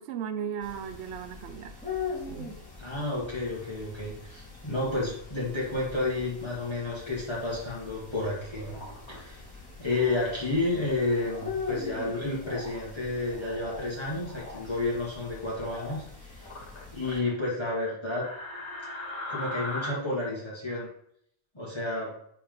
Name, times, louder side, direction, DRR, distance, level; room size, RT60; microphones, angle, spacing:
voice 1, 0.0-1.8 2.3-2.6, right 8 dB, 75° right, 9 dB, 0.9 m, -36 dB
sound 1, 0.6-17.2, left 5 dB, 5° left, 2.2 m, -42 dB
voice 2, 2.8-8.8 9.1-9.4 9.8-16.5 16.9-18.3 19.3-20.9 21.5-22.2, left 2 dB, 25° left, -6 dB, 2.0 m, -31 dB
sound 2, 8.6-9.2 9.9-10.2 11.0-11.5 12.4-12.8 13.3-13.8 14.2-14.6 15.6-16.0 16.4-17.3 18.2-19.9, left 2 dB, 80° left, 1.7 m, -40 dB
10.0 x 3.8 x 3.9 m, 0.69 s
omnidirectional pair, 1.1 m